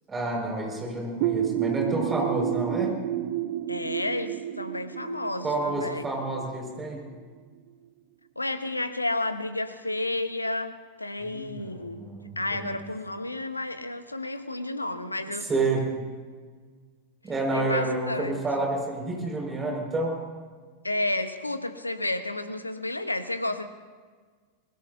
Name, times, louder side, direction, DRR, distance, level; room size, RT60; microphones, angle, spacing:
voice 1, 0.1-3.0 5.4-7.0 11.2-11.7 12.0-12.7 15.5-16.0 17.2-20.2, right 2 dB, 20° right, 0 dB, 5.6 m, -29 dB
sound 1, 1.2-6.8, right 13 dB, 50° right, 0.8 m, -30 dB
voice 2, 3.7-6.0 8.4-12.0 12.4-15.5 17.5-18.4 20.8-23.7, left 2 dB, 85° left, 11 dB, 1.0 m, -31 dB
25.0 x 21.0 x 2.8 m, 1.5 s
figure-of-eight pair, 90°, 0 cm